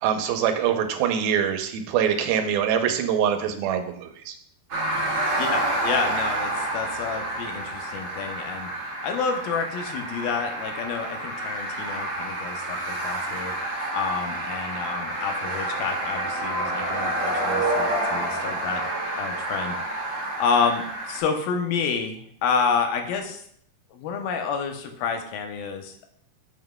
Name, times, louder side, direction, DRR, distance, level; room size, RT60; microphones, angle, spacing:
voice 1, 0.0-4.4, right 8 dB, 90° right, 7 dB, 2.6 m, -24 dB
sound 1, 4.7-21.2, right 1 dB, 55° right, 1.7 m, -29 dB
voice 2, 5.4-18.8 19.2-23.4 23.9-26.1, left 5 dB, 85° left, 5 dB, 2.6 m, -29 dB
8.0 x 7.2 x 2.2 m, 0.66 s
omnidirectional pair, 4.2 m